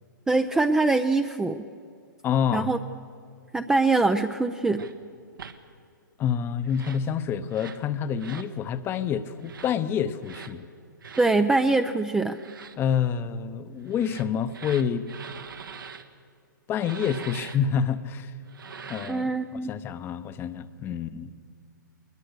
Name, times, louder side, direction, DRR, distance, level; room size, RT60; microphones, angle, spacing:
voice 1, 0.3-1.6 2.5-2.8 3.5-4.8 11.2-12.4 19.1-19.7, right 3 dB, 5° right, 7 dB, 0.4 m, -23 dB
voice 2, 2.2-2.7 6.2-10.7 12.8-15.1 16.7-18.3 18.9-19.3 19.7-21.3, left 8 dB, 20° left, 13 dB, 0.8 m, -27 dB
sound 1, 4.8-4.9 5.4-5.6 6.6-7.1 7.5-7.8 8.2-8.5 9.4-9.7 10.2-10.5 11.0-11.3 12.3-12.8 13.9-16.0 16.8-17.6 18.5-19.3, right 6 dB, 80° right, 1.5 m, -42 dB
20.5 x 20.5 x 6.7 m, 2.3 s
hypercardioid pair, 135°, 11 cm